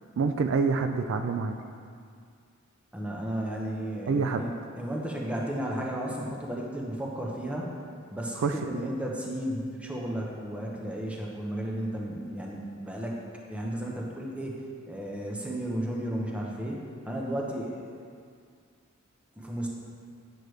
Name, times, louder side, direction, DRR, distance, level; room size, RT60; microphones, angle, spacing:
voice 1, 0.2-1.6 4.1-4.4 8.4-8.9, right 4 dB, 65° right, 6 dB, 0.3 m, -27 dB
voice 2, 2.9-7.7 8.1-13.2 13.5-18.0 19.4-19.7, right 1 dB, 5° right, -3 dB, 0.8 m, -34 dB
8.5 x 6.2 x 3.2 m, 2.2 s
head